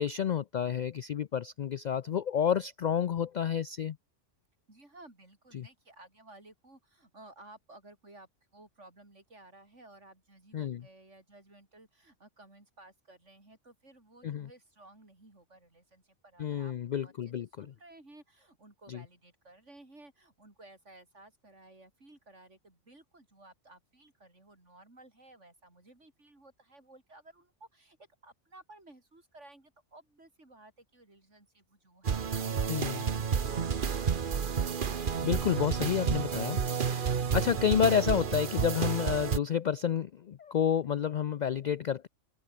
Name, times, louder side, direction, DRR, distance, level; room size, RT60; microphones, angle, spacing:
voice 1, 0.0-4.0 5.5-5.6 10.5-10.8 14.2-14.5 16.4-17.7 18.9-19.0 32.7-33.0 35.2-42.1, left 8 dB, 65° left, 0.4 m, -30 dB
voice 2, 4.7-28.0 28.2-33.7, right 2 dB, 75° right, 5.9 m, -56 dB
sound 1, 32.1-39.4, right 6 dB, 45° right, 1.1 m, -30 dB
omnidirectional pair, 1.2 m